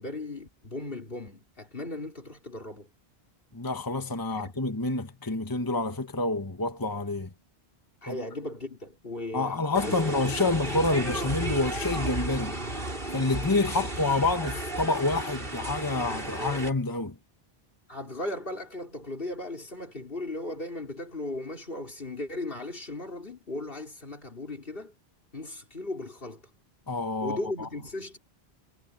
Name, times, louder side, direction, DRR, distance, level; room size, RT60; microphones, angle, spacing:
voice 1, 0.0-2.9 4.3-4.5 8.0-10.0 10.4-10.8 13.8-13.9 17.9-24.9 25.3-26.4 27.2-28.2, left 2 dB, 60° left, 4.2 m, -37 dB
voice 2, 3.5-7.3 8.1-8.2 9.3-12.5 13.1-17.1 26.9-27.7, left 3 dB, 20° left, 1.3 m, -28 dB
sound 1, 9.7-16.7, right 1 dB, 60° right, 5.5 m, -33 dB
omnidirectional pair, 1.1 m